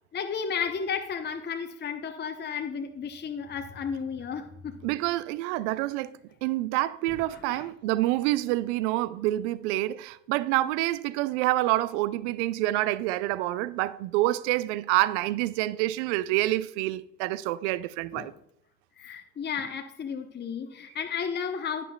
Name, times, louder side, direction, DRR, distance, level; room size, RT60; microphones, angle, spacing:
voice 1, 0.1-4.7 7.1-7.7 18.1-18.3 19.0-21.8, left 6 dB, 25° left, 0.8 m, -33 dB
voice 2, 4.8-18.3, right 17 dB, 65° right, 0.5 m, -27 dB
11.5 x 9.7 x 2.3 m
figure-of-eight pair, 60°, 39 cm